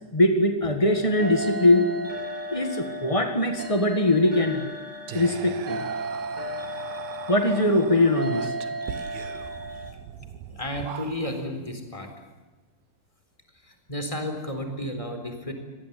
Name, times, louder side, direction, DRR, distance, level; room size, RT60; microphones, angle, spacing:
voice 1, 0.1-1.9 2.5-4.7 5.1-5.8 7.3-8.5, left 1 dB, 50° left, 6 dB, 0.3 m, -21 dB
sound 1, 0.9-9.9, right 1 dB, 20° right, 1.5 m, -35 dB
Whispering, 5.1-11.5, right 9 dB, 85° right, 3.0 m, -40 dB
voice 2, 10.5-12.1 13.6-15.5, left 1 dB, 10° left, 5 dB, 3.7 m, -33 dB
26.0 x 19.0 x 8.5 m, 1.3 s
omnidirectional pair, 4.1 m